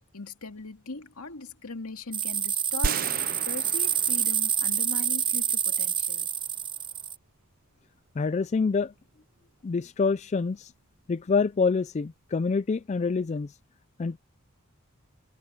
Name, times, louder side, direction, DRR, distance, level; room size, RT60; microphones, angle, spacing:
voice 1, 0.0-3.1 3.5-6.3, left 3 dB, 85° left, 2.2 m, -40 dB
sound 1, 2.1-7.1, right 8 dB, 20° right, 0.8 m, -27 dB
sound 2, 2.8-5.1, right 6 dB, 40° right, 0.4 m, -33 dB
voice 2, 8.2-8.9 9.6-10.7 11.1-13.5 14.0-14.2, left 4 dB, 30° left, 0.3 m, -26 dB
head